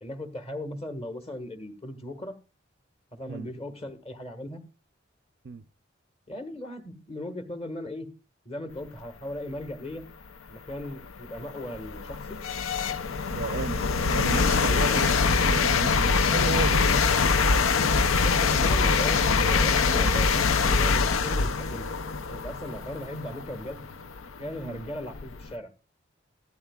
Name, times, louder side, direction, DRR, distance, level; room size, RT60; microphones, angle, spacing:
voice 1, 0.0-2.3 3.1-4.6 6.3-8.1 8.4-10.0 10.5-12.4 14.6-15.0 18.2-21.9 22.3-23.9 24.4-25.7, left 1 dB, 30° left, 1.5 m, -38 dB
sound 1, 10.0-10.1 10.7-25.5, left 4 dB, 90° left, 0.6 m, -24 dB
voice 2, 13.3-17.2 24.6-24.8, right 4 dB, 55° right, 0.5 m, -34 dB
15.0 x 12.5 x 2.3 m
head